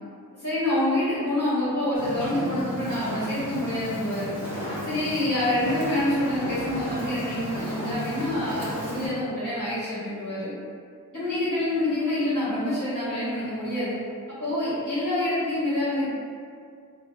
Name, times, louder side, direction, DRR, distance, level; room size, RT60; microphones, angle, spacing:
voice 1, 0.4-4.3 4.8-10.5 11.1-14.0 14.4-16.1, left 1 dB, 55° left, -14 dB, 1.3 m, -27 dB
Fire, 1.9-9.1, left 1 dB, 5° right, 1.2 m, -34 dB
2.5 x 2.3 x 3.1 m, 2.2 s
wide cardioid pair, 55°, 38 cm